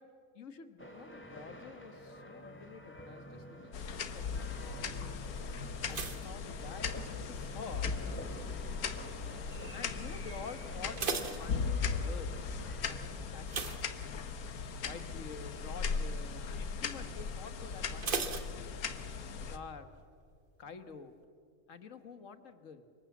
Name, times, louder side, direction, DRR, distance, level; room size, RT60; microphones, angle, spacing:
voice 1, 0.3-5.0 5.9-8.0 9.6-12.3 12.9-13.6 14.9-18.3 19.4-19.9 20.6-21.1 21.7-22.9, left 5 dB, 60° left, 10 dB, 1.8 m, -48 dB
sound 1, 0.8-13.1, equal, 10° left, 2.7 m, -49 dB
sound 2, 3.7-19.6, left 5 dB, 75° left, 1.6 m, -38 dB
sound 3, 5.9-7.4 7.6-8.1 8.7-9.1 9.4-9.5 9.9-10.0 10.6-12.2 13.4-14.6 15.0-15.2 15.6-15.7 18.0-19.2 19.5-19.6, right 4 dB, 40° right, 1.3 m, -38 dB
29.0 x 25.0 x 7.3 m, 2.3 s
omnidirectional pair, 1.6 m